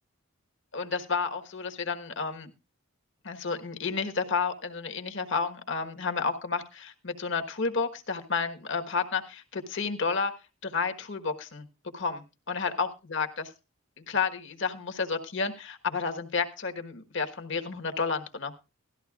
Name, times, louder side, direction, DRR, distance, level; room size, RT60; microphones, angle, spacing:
voice 1, 0.7-2.5 3.2-10.3 10.6-11.7 11.9-13.3 14.0-18.5, left 5 dB, 60° left, 6 dB, 1.4 m, -31 dB
17.5 x 13.5 x 2.4 m, 0.27 s
head